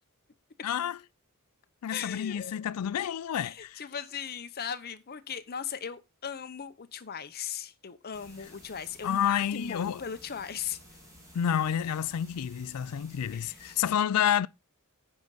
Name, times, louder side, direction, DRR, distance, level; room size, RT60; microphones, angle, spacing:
voice 1, 0.6-1.0 1.8-3.8 9.0-10.0 11.3-14.5, left 9 dB, 90° left, 0.4 m, -29 dB
voice 2, 1.9-2.6 3.4-10.8 13.3-13.8, left 7 dB, 45° left, 0.7 m, -38 dB
sound 1, 8.1-13.9, equal, 15° right, 2.7 m, -54 dB
9.4 x 4.9 x 4.0 m
head